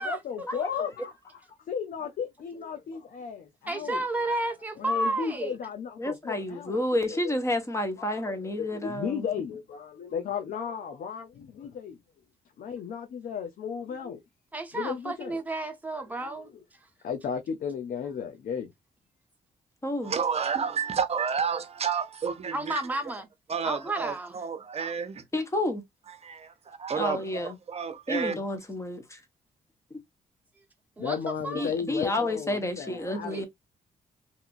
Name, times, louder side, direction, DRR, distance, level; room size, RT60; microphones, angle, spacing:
voice 1, 0.0-4.0 4.8-6.8 7.1-7.3 8.0-12.0 12.6-14.2 14.7-15.4 16.2-16.3 17.0-18.7 31.0-33.5, left 7 dB, 70° left, 0.6 m, -35 dB
voice 2, 3.7-5.5 14.5-16.5 22.5-23.3 23.6-24.4 31.0-31.2 31.4-31.7 33.3-33.5, right 2 dB, 10° right, 1.0 m, -31 dB
voice 3, 6.0-9.3 19.8-20.1 25.3-25.8 26.9-27.6 28.1-29.2 31.5-33.5, left 1 dB, 20° left, 1.0 m, -30 dB
voice 4, 20.0-22.8 23.5-25.2 26.2-28.3, right 6 dB, 45° right, 0.7 m, -30 dB
2.7 x 2.5 x 2.4 m
cardioid pair, 80°, 15 cm